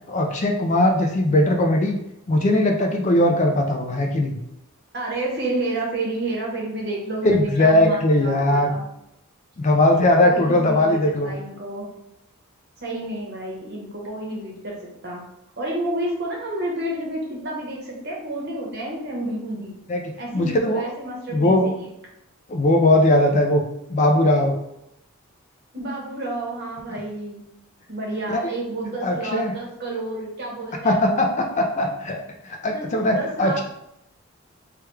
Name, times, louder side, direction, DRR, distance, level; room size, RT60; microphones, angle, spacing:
voice 1, 0.1-2.0 2.3-4.4 7.2-8.7 9.6-11.3 19.9-20.0 20.3-20.9 21.3-21.7 22.5-23.6 23.9-24.5 28.3-28.4 29.0-29.5 30.8-32.2 32.4-33.6, left 1 dB, 35° left, 3 dB, 0.3 m, -19 dB
voice 2, 4.9-8.8 10.2-11.9 12.8-14.8 15.0-15.2 15.6-19.7 20.2-21.9 25.7-27.4 27.9-31.2 32.7-33.6, right 1 dB, 50° right, -2 dB, 0.9 m, -30 dB
3.3 x 2.2 x 3.2 m, 0.80 s
head